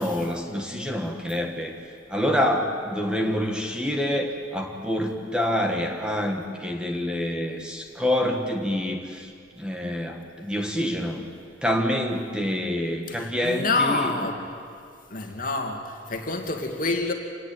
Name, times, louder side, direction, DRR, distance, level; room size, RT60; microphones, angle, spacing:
voice 1, 0.0-1.7 2.1-9.3 9.6-11.2 11.6-14.1, left 1 dB, 5° right, 2 dB, 1.6 m, -27 dB
voice 2, 13.2-14.4 15.1-17.1, left 3 dB, 50° left, 3 dB, 2.4 m, -27 dB
26.5 x 19.0 x 9.2 m, 2.3 s
head